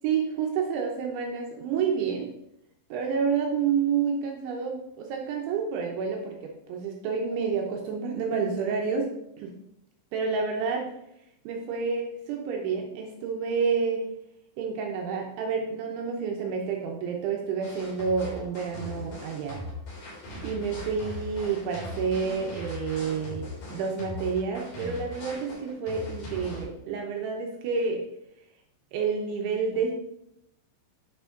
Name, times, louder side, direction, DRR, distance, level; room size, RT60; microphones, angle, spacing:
voice 1, 0.0-2.3 2.9-9.1 9.4-9.5 10.1-10.9 11.4-14.0 14.6-19.6 20.4-23.4 23.7-28.0 28.9-29.9, right 5 dB, 75° right, 1 dB, 3.0 m, -29 dB
sound 1, 17.6-26.6, left 1 dB, 45° left, 4.6 m, -39 dB
11.0 x 6.1 x 3.8 m, 0.80 s
omnidirectional pair, 6.0 m